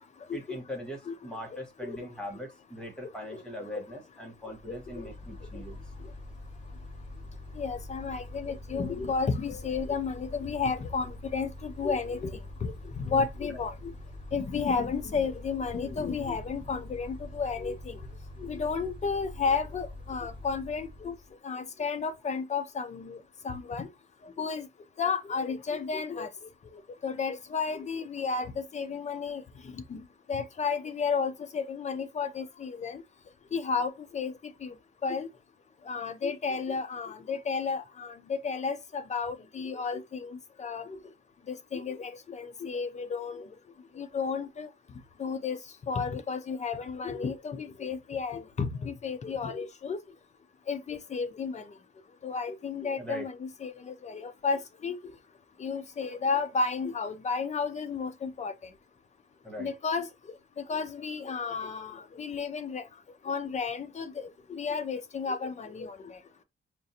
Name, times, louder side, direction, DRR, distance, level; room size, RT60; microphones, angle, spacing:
voice 1, 0.3-5.8 13.5-13.6 53.0-53.2 59.4-59.7, equal, 5° left, 1.0 m, -41 dB
Mechanical fan, 4.5-21.3, left 1 dB, 25° right, 0.7 m, -44 dB
voice 2, 4.7-5.1 7.6-13.9 14.3-18.0 18.4-21.1 21.4-23.2 23.4-23.9 24.4-24.7 25.0-26.3 27.0-29.4 29.7-30.0 30.3-33.0 33.5-34.3 34.6-34.7 35.0-35.3 35.9-41.0 41.5-43.5 44.0-44.7 45.2-45.6 45.9-50.0 50.7-51.6 52.2-55.0 55.6-58.5 59.6-60.1 60.7-62.8 63.2-66.2, left 5 dB, 35° left, 0.4 m, -32 dB
5.2 x 2.4 x 2.7 m
wide cardioid pair, 165°, 20 cm